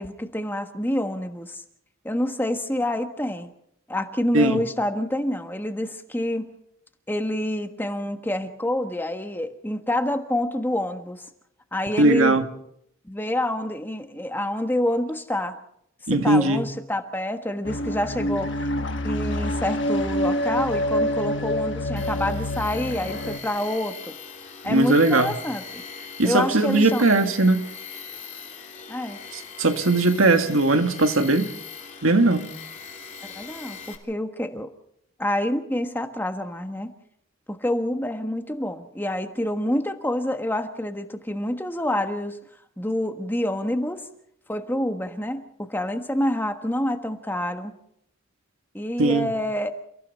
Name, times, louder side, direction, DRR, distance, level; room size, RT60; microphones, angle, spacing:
voice 1, 0.0-1.6 2.0-3.5 3.9-6.5 7.1-11.3 11.7-12.4 13.0-15.6 16.1-18.7 19.0-24.2 24.6-25.8 26.2-27.0 28.9-29.2 33.2-34.7 35.2-36.9 37.5-42.4 42.8-44.1 44.5-47.7 48.7-49.7, left 1 dB, 10° left, 1.3 m, -27 dB
voice 2, 12.0-12.5 16.1-16.7 24.6-25.3 26.2-27.6 29.6-31.5 32.0-32.5 49.0-49.3, right 2 dB, 90° right, 1.9 m, -19 dB
sound 1, 17.6-23.4, left 1 dB, 60° left, 1.4 m, -26 dB
Tools, 22.0-34.0, left 6 dB, 35° left, 3.4 m, -40 dB
29.5 x 16.0 x 5.5 m
head